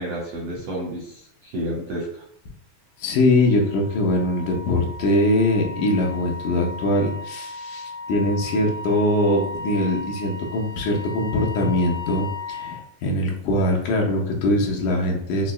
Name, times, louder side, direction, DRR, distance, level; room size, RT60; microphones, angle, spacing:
voice 1, 0.0-2.2, right 1 dB, 75° right, -4 dB, 1.4 m, -30 dB
voice 2, 3.0-15.5, left 1 dB, 85° left, 0 dB, 2.1 m, -22 dB
Wind instrument woodwind instrument, 3.4-12.8, left 2 dB, 55° right, 0.7 m, -36 dB
5.5 x 2.0 x 2.3 m, 0.68 s
omnidirectional pair, 3.5 m